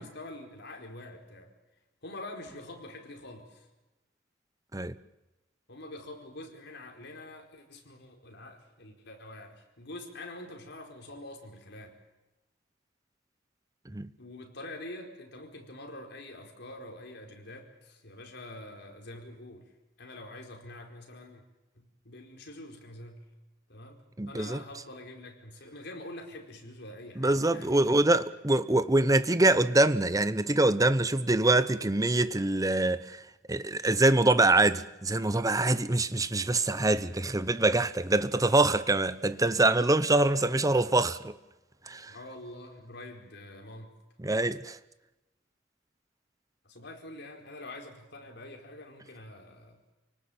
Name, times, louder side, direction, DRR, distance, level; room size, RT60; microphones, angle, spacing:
voice 1, 0.0-1.5 2.0-3.7 5.7-12.0 14.2-19.7 20.0-21.4 21.7-23.3 23.7-28.0 28.5-28.6 42.1-43.9 46.6-49.8, left 1 dB, 60° left, 4.7 m, -45 dB
voice 2, 24.2-24.6 27.2-33.2 33.5-41.3 41.9-42.1 44.2-44.8, right 2 dB, 20° right, 0.9 m, -24 dB
28.5 x 19.0 x 8.7 m
head